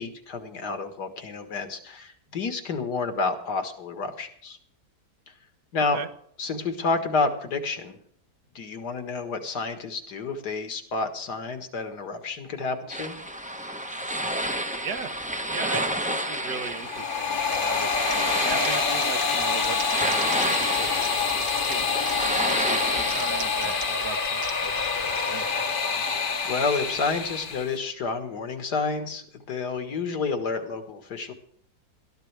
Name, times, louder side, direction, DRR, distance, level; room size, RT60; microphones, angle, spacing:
voice 1, 0.0-4.6 5.7-6.0 6.4-8.0 8.6-13.2 26.5-31.3, left 4 dB, 70° left, 7 dB, 2.2 m, -30 dB
sound 1, 12.9-23.9, right 1 dB, 5° right, 0.7 m, -31 dB
voice 2, 15.5-18.0 18.4-21.8 22.5-25.5, right 6 dB, 70° right, 10 dB, 1.6 m, -38 dB
sound 2, 16.6-27.7, left 5 dB, 35° left, 1.0 m, -26 dB
Typing, 17.4-25.5, right 5 dB, 45° right, 1.3 m, -42 dB
21.0 x 13.0 x 3.4 m, 0.64 s
omnidirectional pair, 1.8 m